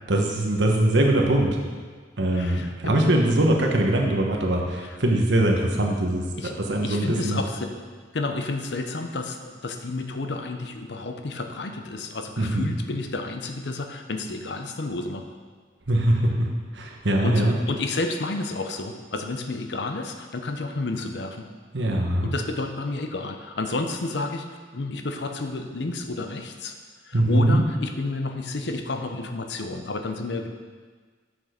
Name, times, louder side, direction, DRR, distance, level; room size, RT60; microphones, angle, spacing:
voice 1, 0.1-1.6 2.2-6.2 6.6-7.4 12.4-12.7 15.9-16.5 16.7-17.5 21.7-22.3 27.1-27.6, right 1 dB, 85° right, 0 dB, 1.3 m, -22 dB
voice 2, 2.3-3.0 4.8-5.0 6.4-7.7 8.1-15.2 17.2-21.4 22.2-24.5 24.7-26.8 27.0-30.5, left 2 dB, 70° left, 5 dB, 0.7 m, -31 dB
7.3 x 6.1 x 5.1 m, 1.5 s
head